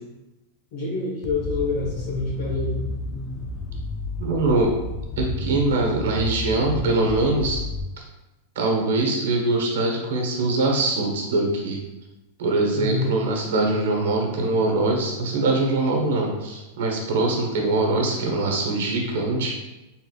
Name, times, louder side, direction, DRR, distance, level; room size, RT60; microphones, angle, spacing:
voice 1, 0.7-2.8 12.7-13.1, left 3 dB, 45° left, -8 dB, 1.3 m, -27 dB
sound 1, 1.2-7.8, left 2 dB, 25° left, 0.4 m, -31 dB
voice 2, 4.2-4.8 5.2-7.6 8.5-11.8 12.4-19.5, right 2 dB, 75° right, 1 dB, 1.1 m, -23 dB
4.4 x 3.7 x 2.4 m, 1.0 s
supercardioid pair, 170°, 0 cm